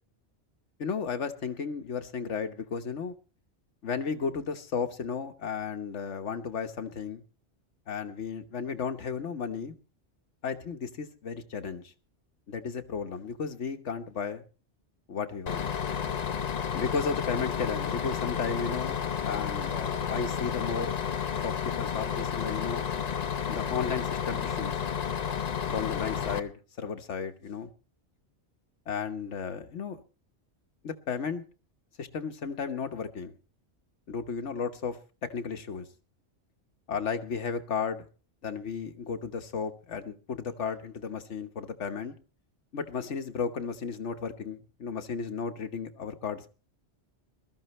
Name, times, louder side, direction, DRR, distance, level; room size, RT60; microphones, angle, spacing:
voice 1, 0.8-3.1 3.8-7.2 7.9-9.8 10.4-11.8 12.5-14.4 15.1-15.7 16.7-19.0 19.2-21.0 21.4-22.8 23.5-24.8 25.7-27.7 28.9-30.0 30.8-31.5 32.0-33.3 34.1-35.9 36.9-38.1 38.4-42.1 42.7-46.5, left 6 dB, 85° left, 1.5 m, -34 dB
Bus, 15.5-26.4, left 7 dB, 40° left, 0.8 m, -31 dB
21.0 x 13.5 x 3.2 m
omnidirectional pair, 1.2 m